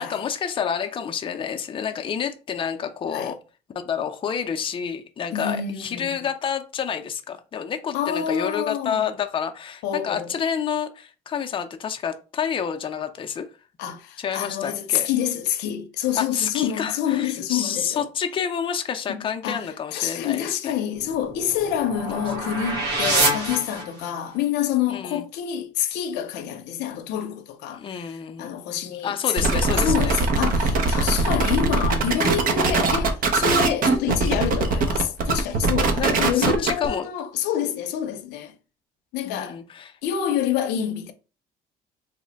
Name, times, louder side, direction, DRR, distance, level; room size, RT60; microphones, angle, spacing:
voice 1, 0.0-3.4 3.7-13.5 14.2-15.1 16.1-20.7 22.1-22.2 24.9-25.2 27.7-28.5 29.0-30.2 35.9-37.1 39.2-39.9, left 7 dB, 30° left, 0.4 m, -29 dB
voice 2, 5.3-6.3 7.9-9.0 9.8-10.3 13.8-18.1 19.1-38.5 39.1-39.6 40.0-41.1, left 9 dB, 90° left, 0.6 m, -27 dB
sound 1, 20.9-24.4, right 2 dB, 80° right, 1.0 m, -26 dB
sound 2, 29.4-36.9, right 3 dB, 55° right, 0.7 m, -21 dB
3.1 x 2.1 x 3.9 m
cardioid pair, 110°, 17 cm